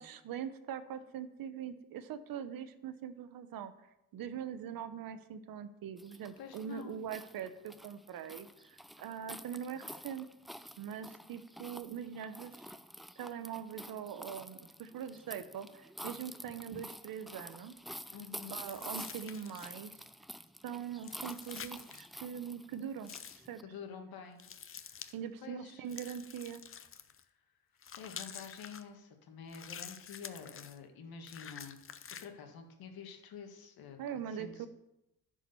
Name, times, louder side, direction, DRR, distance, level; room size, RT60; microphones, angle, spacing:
voice 1, 0.0-3.7 4.1-10.3 10.8-12.7 13.2-17.8 18.5-20.0 20.6-23.6 25.1-26.6 34.0-34.7, right 8 dB, 70° right, 12 dB, 0.8 m, -42 dB
sound 1, 6.0-23.6, equal, ahead, 0.3 m, -49 dB
voice 2, 6.4-7.0 18.1-18.6 23.6-24.4 24.7-25.1 25.4-25.9 27.1-27.3 27.9-31.8 32.2-34.7, left 6 dB, 80° left, 5 dB, 1.7 m, -48 dB
sound 2, 18.6-19.9 21.0-22.1 23.0-23.5 24.4-25.1 25.9-27.2 27.8-28.8 29.5-30.8 31.2-32.3, left 7 dB, 35° left, 0.7 m, -48 dB
10.5 x 4.9 x 6.8 m, 0.89 s
cardioid pair, 95°, 36 cm